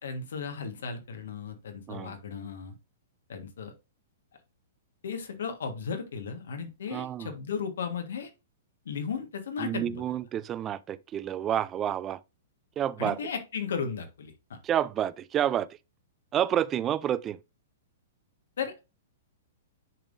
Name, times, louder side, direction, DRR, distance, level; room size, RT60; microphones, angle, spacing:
voice 1, 0.0-2.7 3.3-3.7 5.0-8.3 8.8-10.0 13.0-14.3 18.6-18.7, left 6 dB, 80° left, 1.5 m, -35 dB
voice 2, 6.9-7.3 9.6-12.2 12.8-13.3 14.6-15.7 16.3-17.4, right 10 dB, 25° right, 0.4 m, -29 dB
10.0 x 3.6 x 2.6 m
hypercardioid pair, 130°, 0 cm